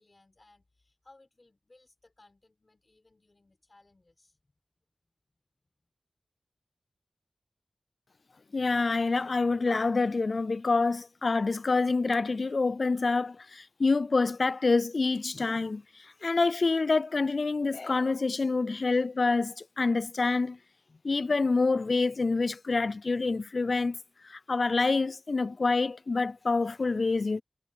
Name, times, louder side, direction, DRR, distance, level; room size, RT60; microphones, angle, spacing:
voice 1, 0.0-4.4, left 2 dB, 35° left, 5.8 m, -62 dB
voice 2, 8.5-20.6 21.0-24.0 24.2-27.4, left 3 dB, 55° left, 0.3 m, -27 dB
wide cardioid pair, 95°, 0 cm